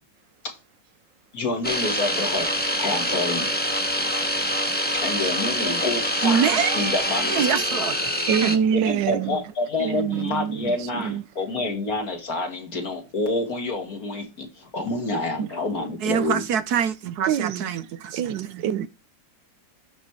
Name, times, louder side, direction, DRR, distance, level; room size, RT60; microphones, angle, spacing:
voice 1, 1.3-3.5 5.0-7.4 8.5-16.4, left 2 dB, 55° left, 2.4 m, -28 dB
sound 1, 1.6-8.6, equal, 5° left, 1.1 m, -25 dB
voice 2, 4.5-4.9 5.2-5.3 8.3-9.4 9.8-11.2 15.4-15.5 17.3-17.8 18.1-18.9, right 8 dB, 85° right, 1.4 m, -26 dB
voice 3, 6.2-7.0 7.3-8.0 8.4-8.6 16.0-18.2, right 7 dB, 70° right, 1.1 m, -24 dB
11.5 x 4.5 x 4.7 m
omnidirectional pair, 1.9 m